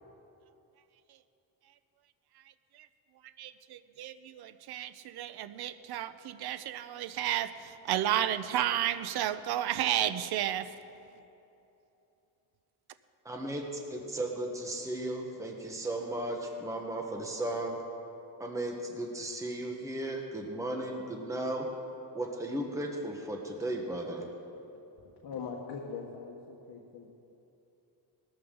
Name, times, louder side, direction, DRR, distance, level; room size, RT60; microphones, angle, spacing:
voice 1, 3.4-7.5 7.9-10.7, right 12 dB, 60° right, 0.6 m, -32 dB
voice 2, 13.2-17.8 18.4-21.7 22.1-24.2, right 1 dB, 5° right, 1.2 m, -35 dB
voice 3, 25.0-27.1, left 5 dB, 65° left, 1.5 m, -41 dB
19.5 x 13.5 x 3.8 m
cardioid pair, 140°, 43 cm